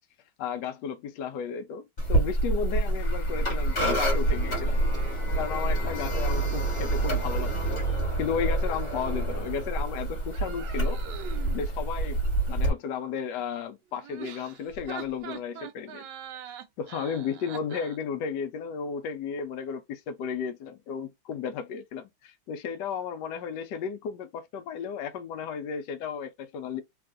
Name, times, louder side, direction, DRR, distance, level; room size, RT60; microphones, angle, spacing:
voice 1, 0.4-4.8 5.4-7.8 8.2-11.0 11.5-12.2 12.5-16.1 16.8-26.8, left 6 dB, 80° left, 1.0 m, -34 dB
sound 1, 2.0-12.7, right 2 dB, 30° left, 1.6 m, -27 dB
sound 2, 10.3-11.6 13.9-18.0, right 8 dB, 75° right, 1.0 m, -42 dB
3.4 x 2.4 x 2.4 m
omnidirectional pair, 2.4 m